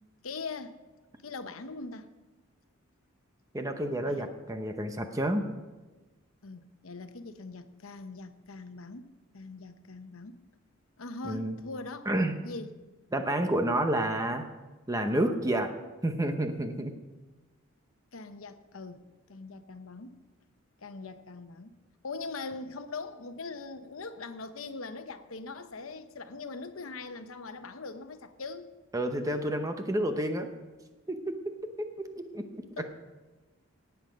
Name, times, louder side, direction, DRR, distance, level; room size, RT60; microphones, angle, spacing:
voice 1, 0.2-0.8 1.2-2.1 4.0-4.3 6.4-10.4 11.0-12.1 12.4-12.8 18.1-20.2 20.8-21.8 22.0-28.7 32.8-32.9, left 3 dB, 85° left, 10 dB, 0.9 m, -41 dB
voice 2, 3.5-5.4 11.2-11.6 12.1-12.4 13.1-14.4 14.9-15.7 16.0-16.9 28.9-30.5 31.1-31.4 32.2-32.6, right 1 dB, 15° right, 6 dB, 0.8 m, -29 dB
18.0 x 8.1 x 5.2 m, 1.2 s
head